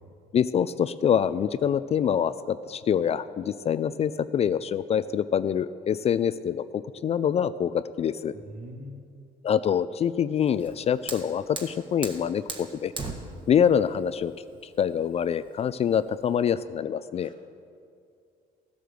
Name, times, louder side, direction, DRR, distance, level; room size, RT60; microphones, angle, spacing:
voice 1, 0.3-8.3 9.4-12.9 13.5-14.3 14.8-17.3, left 8 dB, 40° left, 14 dB, 0.4 m, -25 dB
voice 2, 8.5-9.0 17.2-17.5, equal, 55° right, 2 dB, 2.0 m, -42 dB
Fire, 10.5-16.4, right 3 dB, 30° right, 1.6 m, -40 dB
14.5 x 7.8 x 6.8 m, 2.4 s
cardioid pair, 110°, 17 cm